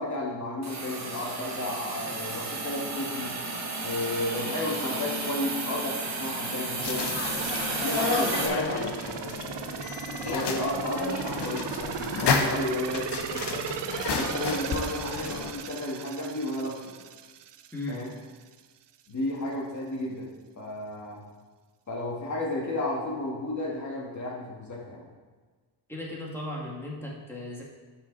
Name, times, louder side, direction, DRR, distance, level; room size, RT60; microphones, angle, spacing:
voice 1, 0.0-3.3 3.8-7.1 7.8-9.9 10.2-13.7 14.1-16.9 17.9-18.1 19.1-20.3 20.6-21.2 21.9-25.1, left 1 dB, 40° left, -2 dB, 2.2 m, -33 dB
Hiss, 0.6-8.5, right 3 dB, 35° right, 1.4 m, -33 dB
voice 2, 2.0-2.5 17.7-18.0 25.9-27.6, left 1 dB, 5° left, -4 dB, 2.2 m, -37 dB
sound 1, 6.8-15.5, left 5 dB, 60° left, 1.0 m, -31 dB
sound 2, 7.4-18.1 18.5-18.6, right 10 dB, 65° right, 0.6 m, -37 dB
12.0 x 5.6 x 4.1 m, 1.4 s
wide cardioid pair, 115°, 46 cm